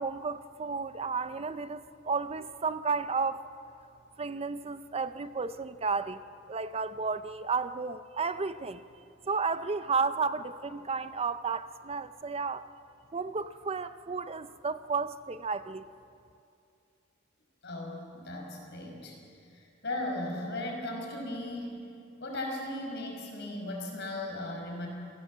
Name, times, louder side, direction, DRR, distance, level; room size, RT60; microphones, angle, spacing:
voice 1, 0.0-3.4 4.2-8.8 9.3-12.7 13.1-15.8, right 4 dB, 30° right, 12 dB, 0.5 m, -32 dB
voice 2, 17.6-19.1 19.5-21.8 22.2-24.9, left 1 dB, 60° left, 1 dB, 5.5 m, -37 dB
28.0 x 17.5 x 7.4 m, 2.5 s
head